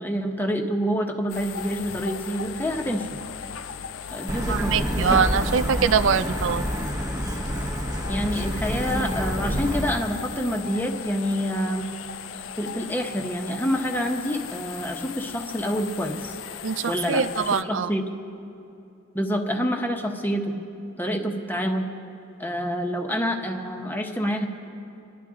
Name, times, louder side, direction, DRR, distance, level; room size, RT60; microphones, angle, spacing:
voice 1, 0.0-3.1 4.1-4.9 8.1-11.9 12.6-16.3 16.9-17.2 17.6-18.1 19.1-20.5 21.0-21.9 22.4-24.5, equal, 10° left, 3 dB, 1.1 m, -27 dB
sound 1, 1.3-17.6, left 8 dB, 90° left, 0.5 m, -38 dB
Truck, 4.3-9.9, equal, 20° right, 1.1 m, -28 dB
voice 2, 4.5-6.7 16.6-17.9, right 6 dB, 70° right, 12 dB, 0.4 m, -23 dB
28.5 x 11.0 x 3.8 m, 2.7 s
head